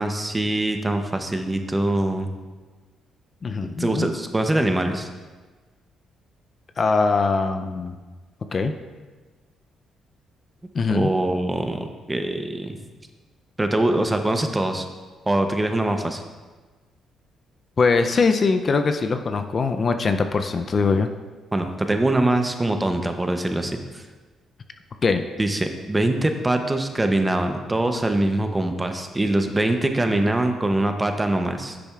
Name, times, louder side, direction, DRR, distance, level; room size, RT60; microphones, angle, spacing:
voice 1, 0.0-2.3 3.8-5.1 10.9-12.8 13.6-14.9 15.3-16.2 21.5-24.0 25.4-31.8, right 1 dB, 15° right, 6 dB, 0.7 m, -23 dB
voice 2, 3.4-4.1 6.8-8.0 8.5-8.7 10.7-11.1 17.8-21.1 25.0-25.2, left 4 dB, 40° left, 7 dB, 0.4 m, -21 dB
10.0 x 6.8 x 2.4 m, 1.3 s
cardioid pair, 90°, 0 cm